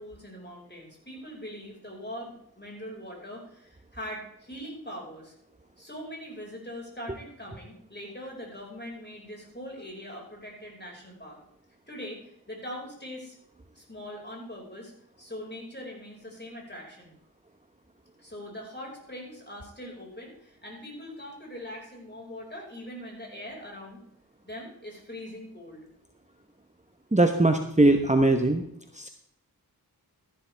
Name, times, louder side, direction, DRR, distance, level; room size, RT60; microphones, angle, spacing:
voice 1, 0.0-5.3 5.8-11.4 11.9-13.4 13.7-14.9 15.2-17.1 18.2-24.0 24.4-25.8, equal, 25° left, -2 dB, 5.1 m, -42 dB
voice 2, 27.1-28.6 28.9-29.1, right 2 dB, 20° right, 5 dB, 1.0 m, -21 dB
13.5 x 11.5 x 3.4 m, 0.72 s
wide cardioid pair, 40°, 38 cm